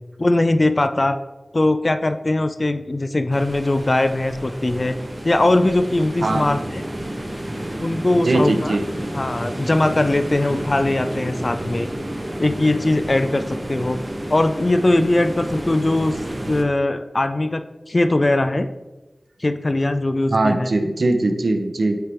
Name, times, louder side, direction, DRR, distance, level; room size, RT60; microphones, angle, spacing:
voice 1, 0.2-1.2 1.5-5.0 5.2-6.8 7.8-8.8 9.1-11.9 12.4-14.0 14.3-16.2 16.5-18.7 19.4-20.7, left 2 dB, 50° left, 10 dB, 0.5 m, -20 dB
sound 1, 3.3-16.6, right 1 dB, 35° right, 1.2 m, -31 dB
voice 2, 6.2-6.6 8.2-8.8 20.3-22.0, right 2 dB, 85° right, 6 dB, 0.7 m, -20 dB
9.0 x 3.4 x 4.4 m, 1.1 s
wide cardioid pair, 45°, 0 cm